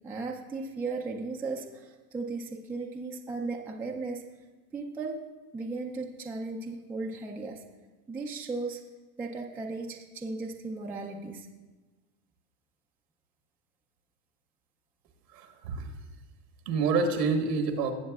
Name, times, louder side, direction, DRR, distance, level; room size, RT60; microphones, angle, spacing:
voice 1, 0.0-4.2 4.7-5.3 5.5-7.6 8.1-8.8 9.2-11.5, right 3 dB, 5° right, 0 dB, 0.3 m, -36 dB
voice 2, 15.3-15.9 16.6-17.9, right 4 dB, 85° right, 4 dB, 1.4 m, -27 dB
17.0 x 7.0 x 2.4 m, 1.2 s
hypercardioid pair, 110°, 47 cm